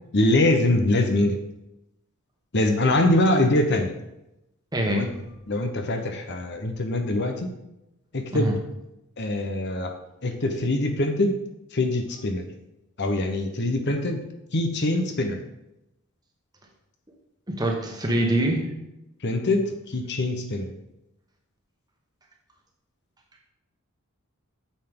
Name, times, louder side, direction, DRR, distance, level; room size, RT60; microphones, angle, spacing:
voice 1, 0.1-1.4 2.5-3.9 4.9-5.1 5.5-7.5 8.1-8.6 9.2-9.9 10.2-11.4 11.7-12.5 13.0-14.2 14.5-15.4 19.2-20.7, left 1 dB, 50° left, 5 dB, 0.9 m, -23 dB
voice 2, 4.7-5.1 8.3-8.5 17.5-18.6, right 1 dB, 20° right, 1 dB, 1.3 m, -24 dB
9.2 x 6.9 x 3.8 m, 0.89 s
head